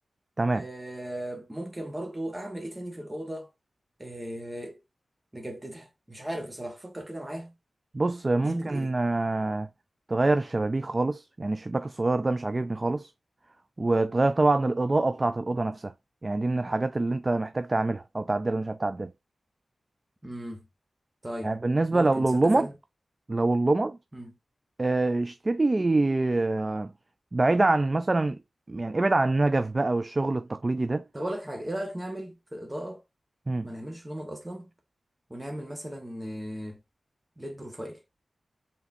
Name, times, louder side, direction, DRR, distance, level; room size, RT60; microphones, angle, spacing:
voice 1, 0.5-3.5 4.0-4.8 5.3-7.5 8.4-8.9 20.2-20.7 21.2-21.6 21.9-22.7 24.1-24.3 31.1-33.0 33.6-34.7 35.3-36.8 37.4-38.0, right 1 dB, 20° right, 1.3 m, -37 dB
voice 2, 7.9-9.7 10.1-13.1 13.8-15.9 16.2-19.1 21.4-22.7 23.3-24.0 24.8-26.9 27.3-28.4 28.7-31.0 33.5-33.7, right 2 dB, 35° right, 0.3 m, -25 dB
4.8 x 3.5 x 2.7 m
wide cardioid pair, 80°, 0 cm